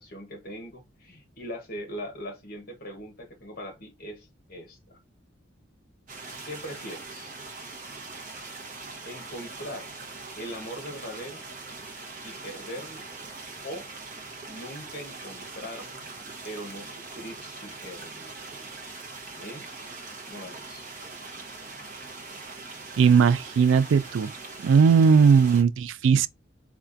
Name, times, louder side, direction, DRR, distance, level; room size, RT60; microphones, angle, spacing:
voice 1, 0.0-5.0 6.4-7.3 9.0-9.9 10.3-11.5 12.2-13.1 13.6-13.9 14.5-16.1 16.4-18.5 19.3-19.7 20.2-20.9, equal, 50° left, 1.0 m, -40 dB
sound 1, 6.1-25.6, right 3 dB, 40° right, 0.8 m, -42 dB
voice 2, 23.0-24.3 24.6-26.3, right 6 dB, 70° right, 0.3 m, -18 dB
4.3 x 2.4 x 2.5 m
head